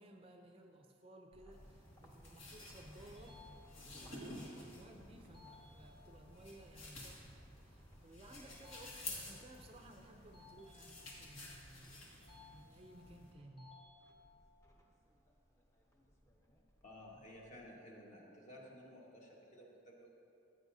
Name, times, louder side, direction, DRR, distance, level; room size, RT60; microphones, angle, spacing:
voice 1, 0.0-12.1 12.5-13.8, right 1 dB, 30° right, 3 dB, 0.5 m, -58 dB
sound 1, 1.3-17.7, equal, 15° left, 0.8 m, -64 dB
sound 2, 1.5-13.3, left 2 dB, 80° left, 2.1 m, -52 dB
sound 3, 3.1-4.2 5.3-6.3 8.4-9.4 10.3-11.4 12.2-13.1 13.6-14.6, left 5 dB, 55° left, 2.1 m, -62 dB
voice 2, 16.8-20.1, left 1 dB, 35° left, -2 dB, 1.4 m, -55 dB
14.5 x 8.8 x 2.7 m, 2.8 s
head